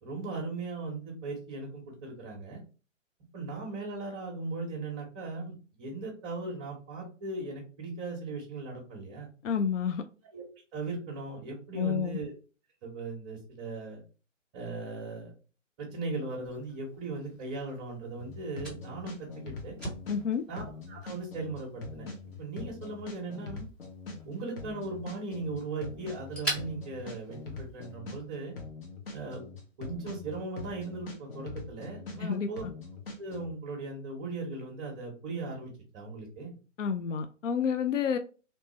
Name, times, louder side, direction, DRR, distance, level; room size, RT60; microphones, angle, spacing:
voice 1, 0.0-2.6 3.3-9.3 10.3-10.4 10.7-12.3 12.8-14.0 14.5-15.3 15.8-19.8 20.5-22.1 22.4-23.7 24.2-28.5 29.1-29.4 29.8-32.6 33.2-36.5, right 3 dB, 25° right, 1.1 m, -38 dB
voice 2, 9.4-10.0 11.7-12.2 20.1-20.4 32.2-32.5 36.8-38.2, left 7 dB, 75° left, 0.5 m, -29 dB
Fire, 16.4-28.0, right 1 dB, ahead, 0.6 m, -44 dB
sound 1, 18.2-20.2 20.6-24.2 24.6-28.2 28.6-32.2 32.6-33.5, left 3 dB, 50° left, 1.4 m, -43 dB
3.2 x 2.8 x 4.2 m
figure-of-eight pair, 135°, 38 cm